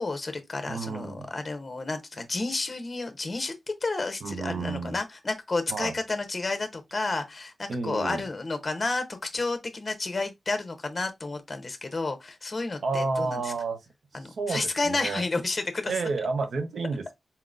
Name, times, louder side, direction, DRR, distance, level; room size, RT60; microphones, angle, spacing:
voice 1, 0.0-3.5 3.8-13.4 14.1-15.9, left 3 dB, 25° left, 0.7 m, -31 dB
voice 2, 0.7-1.3 4.2-5.0 5.7-5.9 7.7-8.2 12.8-13.8 14.1-15.3 15.9-17.1, right 4 dB, 70° right, 0.7 m, -31 dB
4.3 x 3.7 x 2.4 m
wide cardioid pair, 175°, 0 cm